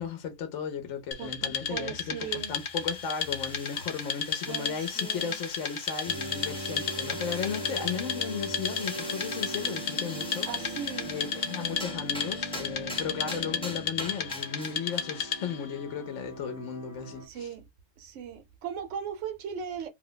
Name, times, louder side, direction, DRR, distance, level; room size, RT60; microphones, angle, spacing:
voice 1, 0.0-10.5 11.0-17.5, left 6 dB, 70° left, 0.9 m, -35 dB
Wood, 1.1-15.6, left 7 dB, 55° left, 0.5 m, -34 dB
voice 2, 1.2-2.6 4.5-5.4 10.5-11.1 17.2-17.7 18.0-19.9, right 7 dB, 70° right, 1.0 m, -38 dB
sound 1, 2.2-15.3, left 1 dB, 5° left, 0.5 m, -43 dB
sound 2, 6.0-17.3, right 1 dB, 45° right, 0.8 m, -40 dB
2.6 x 2.0 x 3.7 m
omnidirectional pair, 1.3 m